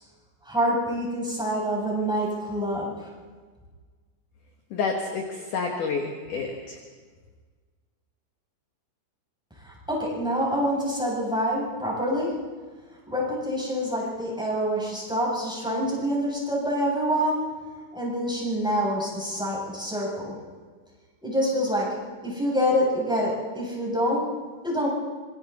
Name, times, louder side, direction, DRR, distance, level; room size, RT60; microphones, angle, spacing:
voice 1, 0.4-3.1 9.6-12.3 13.1-17.4 17.9-20.3 21.2-21.9 22.2-24.2 24.6-24.9, equal, ahead, -5 dB, 7.4 m, -26 dB
voice 2, 4.7-6.8, left 4 dB, 60° left, 2 dB, 2.3 m, -29 dB
26.5 x 24.0 x 4.3 m, 1.5 s
omnidirectional pair, 5.4 m